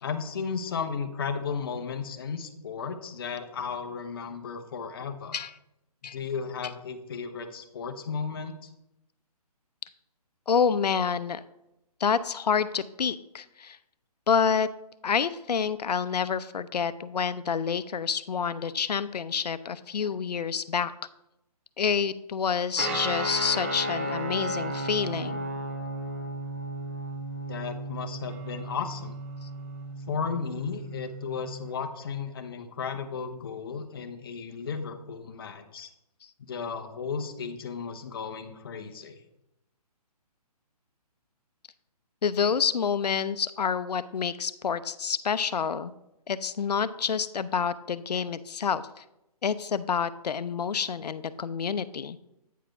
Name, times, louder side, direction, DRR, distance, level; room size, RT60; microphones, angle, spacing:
voice 1, 0.0-5.4 6.1-8.7 27.5-29.2 30.1-35.9 36.4-39.2, left 6 dB, 35° left, 7 dB, 0.8 m, -34 dB
voice 2, 10.5-11.4 12.0-13.8 14.3-14.7 15.0-20.9 21.8-25.5 42.2-45.9 46.3-49.0 49.4-52.2, left 6 dB, 90° left, 14 dB, 0.6 m, -28 dB
sound 1, 22.8-31.7, right 1 dB, 20° right, 0.5 m, -34 dB
9.0 x 4.8 x 4.7 m, 0.86 s
hypercardioid pair, 165°, 20 cm